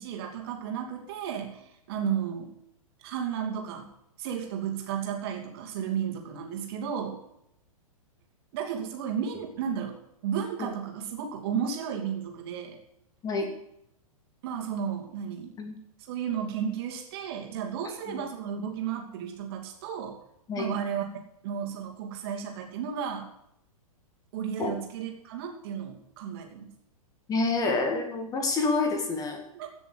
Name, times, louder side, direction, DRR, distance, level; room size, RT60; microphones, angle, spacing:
voice 1, 0.0-2.5 3.0-3.9 4.2-7.2 8.5-12.8 14.4-15.5 16.0-20.2 20.6-21.1 21.4-23.3 24.3-26.7 29.5-29.7, right 8 dB, 40° right, 3 dB, 2.9 m, -33 dB
voice 2, 17.9-18.3 20.5-20.7 24.6-24.8 27.3-29.4, left 3 dB, 20° left, 5 dB, 2.0 m, -28 dB
16.0 x 6.9 x 8.1 m, 0.75 s
figure-of-eight pair, 105°, 19 cm